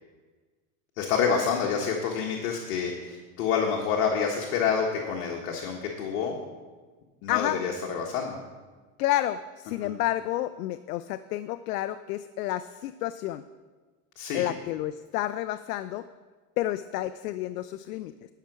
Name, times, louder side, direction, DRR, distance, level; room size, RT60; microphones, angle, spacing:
voice 1, 1.0-6.4 7.2-8.4 9.8-9.9 14.2-14.4, left 6 dB, 65° left, -1 dB, 1.6 m, -28 dB
voice 2, 7.3-7.6 9.0-13.4 14.3-16.1 16.6-18.1, left 14 dB, 85° left, 12 dB, 0.5 m, -30 dB
11.5 x 5.8 x 6.2 m, 1.4 s
supercardioid pair, 125°, 45 cm